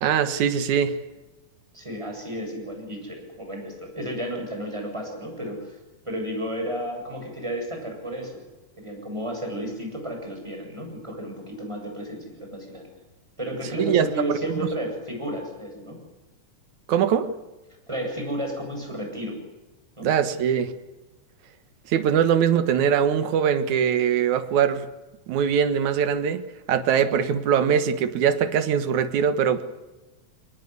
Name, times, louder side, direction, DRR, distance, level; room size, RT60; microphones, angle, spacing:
voice 1, 0.0-0.9 13.8-14.6 16.9-17.3 20.0-20.7 21.9-24.9 25.3-26.4 26.7-29.6, right 8 dB, 70° right, 11 dB, 2.7 m, -22 dB
voice 2, 1.7-5.8 6.0-8.5 8.8-12.9 13.4-16.0 17.9-19.4 20.0-20.1, equal, 10° right, 2 dB, 7.7 m, -32 dB
23.5 x 20.0 x 9.6 m, 1.1 s
omnidirectional pair, 3.6 m